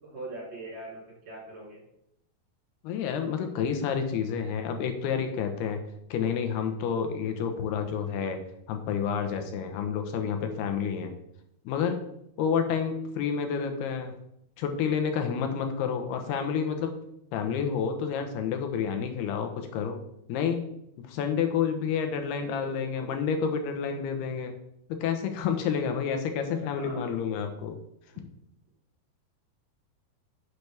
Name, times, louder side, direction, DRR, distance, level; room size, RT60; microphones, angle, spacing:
voice 1, 0.0-1.8 4.4-4.6 22.4-23.2 26.5-27.2, right 2 dB, 45° right, -5 dB, 4.4 m, -43 dB
voice 2, 2.8-5.8 6.1-8.4 8.7-11.1 11.7-12.0 12.4-14.1 14.6-16.9 17.3-20.0 20.3-20.7 21.0-24.6 24.9-27.8, left 7 dB, 85° left, 6 dB, 3.0 m, -29 dB
10.5 x 7.1 x 3.4 m, 0.79 s
omnidirectional pair, 4.5 m